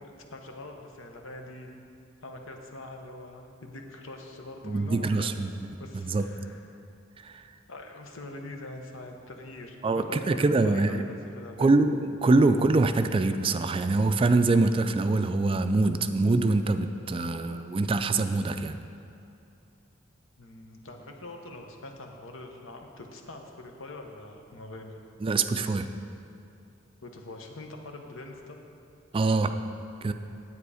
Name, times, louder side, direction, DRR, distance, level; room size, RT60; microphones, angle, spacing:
voice 1, 0.0-1.7 2.2-5.4 5.8-6.8 7.7-11.8 20.4-25.0 27.0-28.6, left 2 dB, 80° left, 3 dB, 1.0 m, -44 dB
voice 2, 4.6-5.5 5.9-6.3 7.2-7.4 9.8-11.0 11.6-18.8 25.2-25.9 29.1-29.5 30.0-30.1, right 3 dB, 25° right, 9 dB, 0.3 m, -24 dB
9.6 x 8.5 x 4.9 m, 2.6 s
head